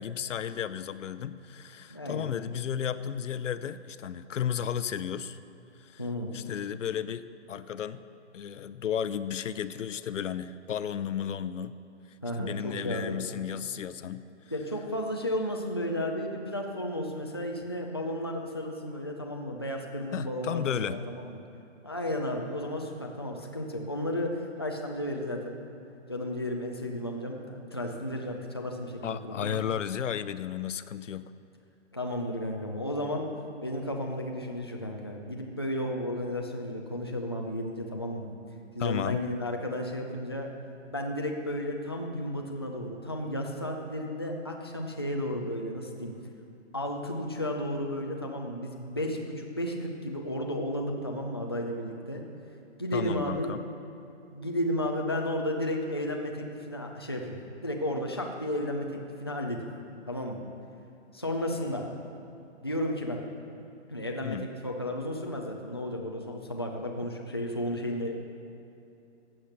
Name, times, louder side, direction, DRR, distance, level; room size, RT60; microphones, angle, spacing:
voice 1, 0.0-5.4 5.8-8.0 8.3-11.8 12.4-14.3 20.1-21.0 29.0-31.3 38.8-39.2 52.9-53.6 64.2-64.5, left 9 dB, 90° left, 14 dB, 0.7 m, -33 dB
voice 2, 1.9-2.3 6.0-6.4 12.2-13.2 14.5-21.4 21.8-25.6 26.1-29.6 31.9-33.3 33.6-38.3 38.8-40.5 40.9-46.1 46.7-52.2 52.8-53.6 54.3-59.7 60.1-60.4 61.1-61.9 62.6-63.2 63.9-68.2, left 1 dB, 20° left, 1 dB, 0.4 m, -33 dB
15.0 x 8.1 x 5.7 m, 2.8 s
hypercardioid pair, 180°, 36 cm